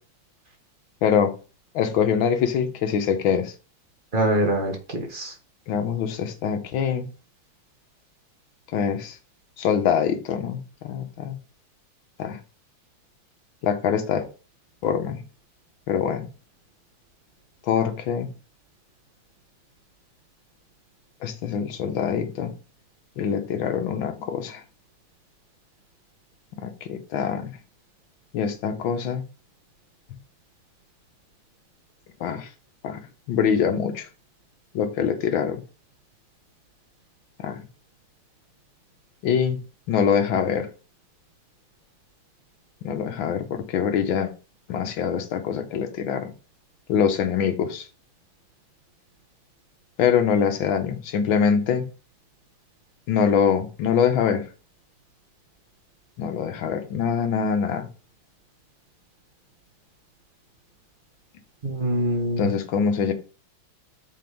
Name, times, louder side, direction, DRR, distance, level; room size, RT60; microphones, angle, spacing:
voice 1, 1.0-1.3 1.7-3.5 5.7-7.1 8.7-9.2 9.6-11.4 12.2-12.4 13.6-14.3 14.8-15.2 15.9-16.3 17.6-18.3 21.2-22.5 23.2-24.6 26.6-27.6 28.3-29.2 32.2-32.5 32.8-33.0 33.3-34.1 34.7-35.6 37.4-37.6 39.2-39.6 39.9-40.7 42.8-44.3 44.7-46.3 46.9-47.9 50.0-51.9 53.1-54.5 56.2-57.9 62.4-63.1, left 7 dB, 70° left, 1.8 m, -24 dB
voice 2, 4.1-5.3 61.6-62.5, right 1 dB, 25° right, 1.6 m, -24 dB
7.7 x 4.9 x 3.6 m
omnidirectional pair, 2.3 m